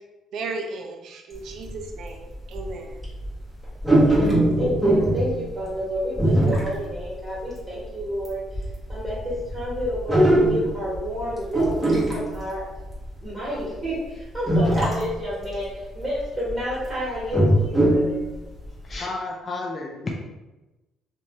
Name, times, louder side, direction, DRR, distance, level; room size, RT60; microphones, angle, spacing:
voice 1, 0.3-3.0, right 3 dB, 70° right, 3 dB, 0.4 m, -35 dB
sound 1, 1.7-1.8 2.5-2.7 3.0-3.3 3.8-5.4 6.1-7.0 7.4-7.5 8.2-8.3 8.5-11.2 11.5-13.1 13.8-13.9 14.5-15.2 15.5-15.6 16.2-16.6 17.1-18.2 18.6-18.7 18.9-19.0, right 1 dB, ahead, 0.9 m, -20 dB
voice 2, 4.0-5.3 5.5-8.4 8.9-12.7 13.2-18.2, equal, 20° right, -9 dB, 1.2 m, -30 dB
voice 3, 18.8-20.2, left 2 dB, 30° left, -1 dB, 0.4 m, -31 dB
2.6 x 2.2 x 2.8 m, 1.1 s
cardioid pair, 105°, 0 cm